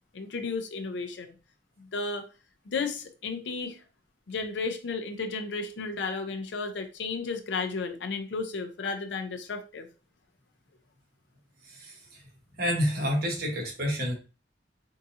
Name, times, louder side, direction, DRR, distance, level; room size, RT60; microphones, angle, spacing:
voice 1, 0.1-1.4 1.8-2.3 2.7-3.8 4.3-9.9, left 4 dB, 80° left, 0.5 m, -33 dB
voice 2, 11.6-12.2 12.6-14.1, equal, 55° right, 1.1 m, -29 dB
3.6 x 2.7 x 2.7 m
head